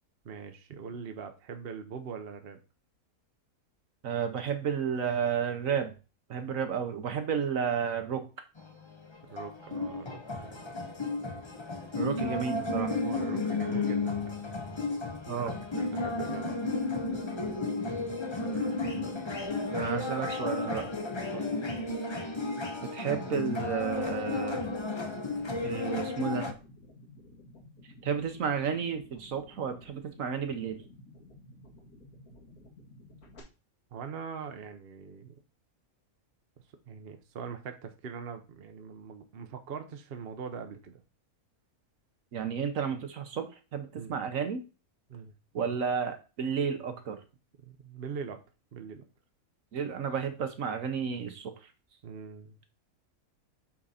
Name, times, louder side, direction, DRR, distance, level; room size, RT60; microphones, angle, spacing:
voice 1, 0.2-2.6 9.3-10.6 11.9-12.1 12.9-14.4 15.4-16.8 18.4-18.8 21.3-21.5 33.9-35.3 36.9-41.0 44.0-44.1 45.1-45.3 47.6-48.4 48.7-49.0 52.0-52.6, right 6 dB, 50° right, 6 dB, 1.0 m, -42 dB
voice 2, 4.0-5.9 6.3-8.3 12.0-12.9 15.3-15.6 19.7-20.9 22.8-24.7 25.6-26.5 28.0-30.8 42.3-44.6 45.5-47.2 49.7-51.5, right 7 dB, 65° right, 7 dB, 1.3 m, -32 dB
sound 1, 8.6-26.5, left 3 dB, 25° left, 0.7 m, -33 dB
sound 2, 23.4-33.4, left 1 dB, 85° left, 2.3 m, -54 dB
8.5 x 3.7 x 4.2 m, 0.31 s
omnidirectional pair, 1.5 m